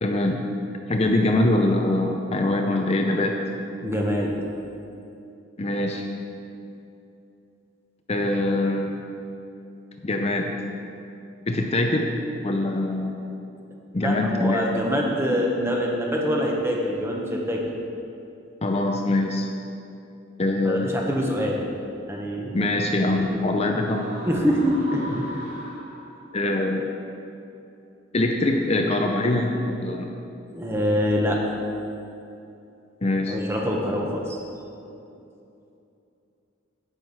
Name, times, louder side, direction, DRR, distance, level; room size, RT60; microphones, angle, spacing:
voice 1, 0.0-0.5 0.9-3.4 5.6-6.1 8.1-9.0 10.0-10.5 11.5-12.1 12.4-13.2 13.9-14.6 18.6-19.5 20.4-21.1 22.5-24.1 26.3-26.9 28.1-30.1 33.0-33.4, left 2 dB, 30° left, 3 dB, 0.6 m, -23 dB
voice 2, 3.8-4.3 14.0-17.6 20.6-21.6 22.1-22.7 22.9-23.2 24.3-25.4 30.5-31.4 33.3-34.4, equal, 15° right, -1 dB, 1.3 m, -25 dB
sound 1, 23.8-26.4, left 1 dB, 35° right, 2.5 m, -40 dB
9.4 x 8.1 x 5.6 m, 2.7 s
head